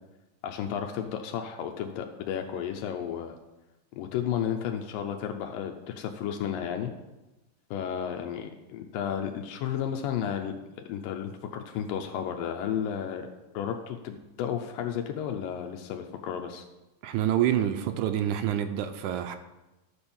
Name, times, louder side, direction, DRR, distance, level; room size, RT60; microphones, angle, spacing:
voice 1, 0.4-3.4 4.0-6.9 7.7-10.6 10.9-13.3 13.5-16.7, left 9 dB, 85° left, 4 dB, 2.4 m, -33 dB
voice 2, 17.0-19.4, right 11 dB, 75° right, 9 dB, 1.9 m, -27 dB
12.5 x 4.4 x 7.0 m, 1.0 s
omnidirectional pair, 4.0 m